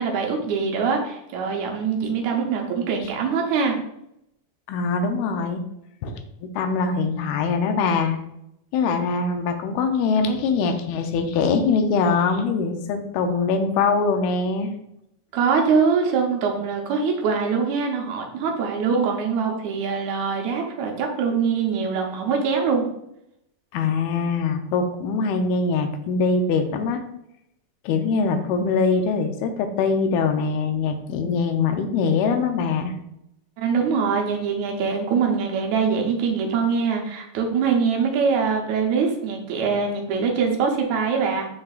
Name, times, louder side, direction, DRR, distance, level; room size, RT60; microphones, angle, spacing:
voice 1, 0.0-3.8 15.3-22.9 33.6-41.5, right 5 dB, 70° right, 1 dB, 1.8 m, -23 dB
voice 2, 4.7-5.6 6.0-8.2 8.7-14.7 23.7-27.0 27.8-32.9, left 4 dB, 85° left, 5 dB, 2.5 m, -23 dB
10.5 x 3.7 x 2.4 m, 0.79 s
omnidirectional pair, 4.4 m